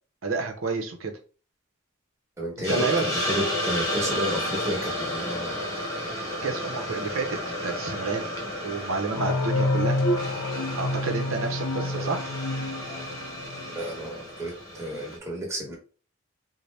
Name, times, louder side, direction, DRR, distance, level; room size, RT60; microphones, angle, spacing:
voice 1, 0.2-1.1 2.6-3.0 6.4-8.3 8.6-10.0 10.8-12.2, right 4 dB, 75° right, 4 dB, 0.6 m, -29 dB
voice 2, 2.4-5.6 11.8-12.1 13.7-15.8, equal, 15° right, -2 dB, 1.0 m, -32 dB
Hiss, 2.6-15.2, equal, 15° left, 0.9 m, -32 dB
sound 1, 9.1-13.7, left 1 dB, 60° left, 0.5 m, -28 dB
4.0 x 2.1 x 3.3 m, 0.38 s
head